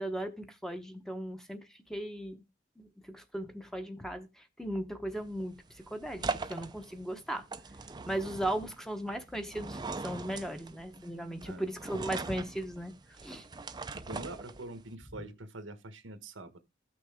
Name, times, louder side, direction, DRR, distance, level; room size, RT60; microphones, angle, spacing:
voice 1, 0.0-2.4 2.8-7.4 8.0-12.9 13.2-13.5, right 1 dB, 5° left, 0.9 m, -37 dB
sound 1, 5.1-14.9, right 3 dB, 20° right, 0.5 m, -41 dB
voice 2, 8.1-8.5 11.4-11.7 13.9-16.6, right 2 dB, 90° right, 1.3 m, -45 dB
14.0 x 6.2 x 3.5 m
head